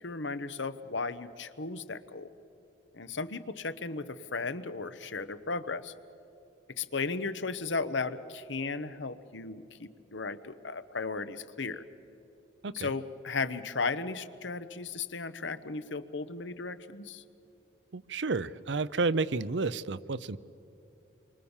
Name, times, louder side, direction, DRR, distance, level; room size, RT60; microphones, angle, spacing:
voice 1, 0.0-2.3 2.9-5.9 6.8-11.8 12.7-17.2, left 4 dB, 80° left, 12 dB, 1.1 m, -35 dB
voice 2, 17.9-20.4, right 3 dB, 75° right, 16 dB, 0.7 m, -31 dB
28.5 x 24.0 x 7.2 m, 2.9 s
head